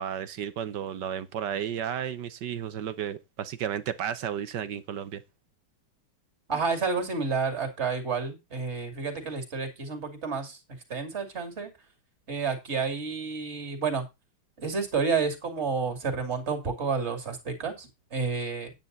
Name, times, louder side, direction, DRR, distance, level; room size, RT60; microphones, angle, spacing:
voice 1, 0.0-5.2, right 9 dB, 65° right, 1.4 m, -33 dB
voice 2, 6.5-10.6 10.9-11.7 12.3-14.0 14.6-18.7, right 5 dB, 30° right, 3.0 m, -30 dB
9.5 x 9.1 x 4.0 m
omnidirectional pair, 2.2 m